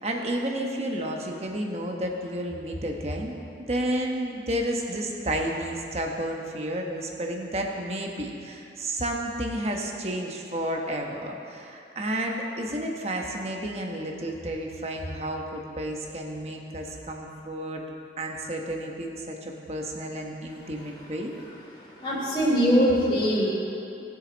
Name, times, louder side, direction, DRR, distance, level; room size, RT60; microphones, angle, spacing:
voice 1, 0.0-3.4 3.7-17.8 18.2-21.3, right 1 dB, 35° right, 1 dB, 1.2 m, -31 dB
voice 2, 22.0-23.5, equal, 30° left, -8 dB, 3.1 m, -22 dB
19.5 x 7.0 x 4.0 m, 2.6 s
head